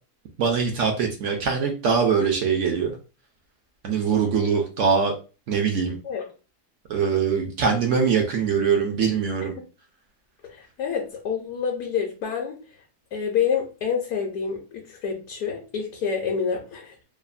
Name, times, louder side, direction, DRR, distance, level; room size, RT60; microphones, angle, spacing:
voice 1, 0.4-3.0 3.8-5.1 5.5-6.0 6.9-9.5, right 6 dB, 70° right, 2 dB, 0.7 m, -22 dB
voice 2, 10.4-12.6 13.1-16.9, left 6 dB, 70° left, 0 dB, 1.1 m, -28 dB
3.1 x 2.1 x 2.4 m, 0.33 s
omnidirectional pair, 1.7 m